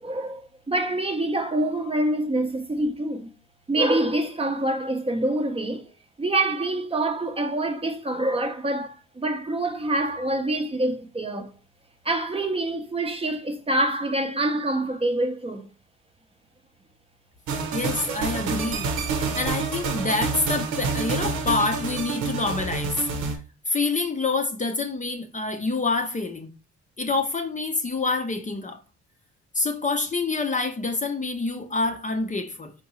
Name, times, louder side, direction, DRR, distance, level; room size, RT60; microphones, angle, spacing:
voice 1, 0.0-3.3 3.7-5.8 6.2-11.5 12.0-15.7 18.1-18.2 19.2-19.3, right 1 dB, 20° right, 0.6 m, -26 dB
sound 1, 17.5-23.4, right 4 dB, 90° right, 0.9 m, -28 dB
voice 2, 17.7-23.0 23.7-26.5 27.0-28.8 29.5-32.7, left 3 dB, 25° left, 0.6 m, -27 dB
4.4 x 3.7 x 3.0 m
cardioid pair, 90°, 30 cm